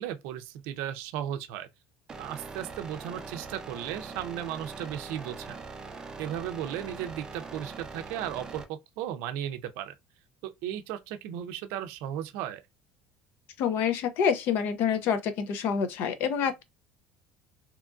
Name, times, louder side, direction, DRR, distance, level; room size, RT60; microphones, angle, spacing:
voice 1, 0.0-1.7 2.2-5.6 6.2-10.0 10.4-12.6, right 10 dB, 75° right, 0.4 m, -35 dB
sound 1, 2.1-8.6, right 4 dB, 20° right, 0.4 m, -42 dB
voice 2, 13.6-16.6, left 7 dB, 55° left, 0.5 m, -27 dB
2.8 x 2.5 x 2.3 m
cardioid pair, 150°, 4 cm